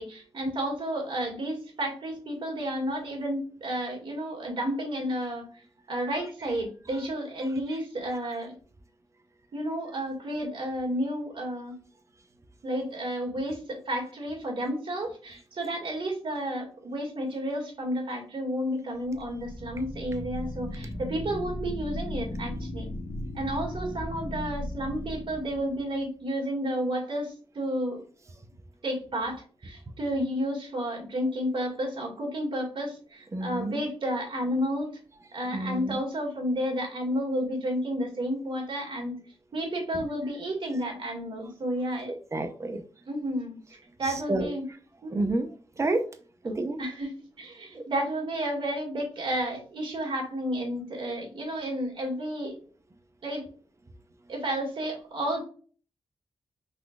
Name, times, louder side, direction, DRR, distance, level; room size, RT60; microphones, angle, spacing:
voice 1, 0.0-5.4 5.9-8.5 9.5-11.7 12.6-22.9 23.3-28.0 28.8-35.0 35.3-39.2 39.5-42.1 43.1-43.6 44.0-44.6 45.0-45.3 46.8-52.6 53.2-53.4 54.3-55.4, equal, 55° right, 0 dB, 2.0 m, -31 dB
sound 1, 19.0-26.1, left 1 dB, 65° left, 1.5 m, -37 dB
voice 2, 33.3-33.8 35.5-36.0 42.1-42.8 44.0-44.5 45.1-45.5 45.8-46.0 46.4-46.8 47.7-47.9, right 2 dB, 30° right, 7 dB, 0.7 m, -29 dB
5.5 x 3.9 x 2.4 m, 0.41 s
wide cardioid pair, 135°, 11 cm